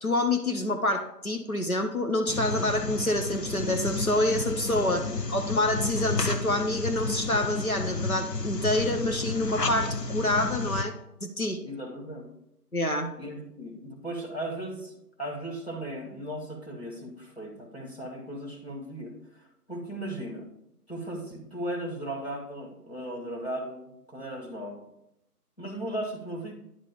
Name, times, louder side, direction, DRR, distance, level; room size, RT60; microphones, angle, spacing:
voice 1, 0.0-10.9 11.2-11.6 12.7-13.1, left 1 dB, 60° left, 5 dB, 0.9 m, -27 dB
sound 1, 2.3-10.8, left 3 dB, 90° left, 0.9 m, -31 dB
voice 2, 11.6-12.3 13.2-19.1 19.4-20.5 20.9-24.9 25.6-26.5, right 1 dB, 40° left, -4 dB, 1.9 m, -37 dB
10.0 x 3.9 x 5.0 m, 0.80 s
figure-of-eight pair, 180°, 47 cm